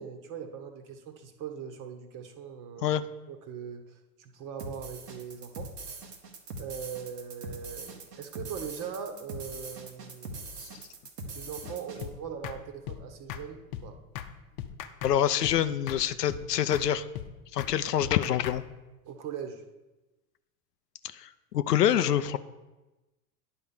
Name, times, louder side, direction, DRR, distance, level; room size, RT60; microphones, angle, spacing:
voice 1, 0.0-3.0 3.3-5.7 6.6-10.7 11.3-14.0 19.0-19.6, right 7 dB, 40° right, 6 dB, 1.3 m, -41 dB
sound 1, 4.6-12.1, right 2 dB, 85° right, 1.4 m, -42 dB
sound 2, 12.0-12.1 12.4-12.6 12.9-13.0 13.3-13.4 13.7-13.9 14.1-14.3 14.6-15.2 15.4-15.6 15.9-16.0 16.3-16.4 16.7-16.9 17.1-17.3 17.6-17.7 18.0-18.6, left 11 dB, 50° left, 0.8 m, -38 dB
voice 2, 15.0-17.0 17.5-18.6 21.1-21.3 21.5-22.4, left 10 dB, 85° left, 13 dB, 0.6 m, -26 dB
9.7 x 4.4 x 7.0 m, 1.1 s
hypercardioid pair, 90°, 47 cm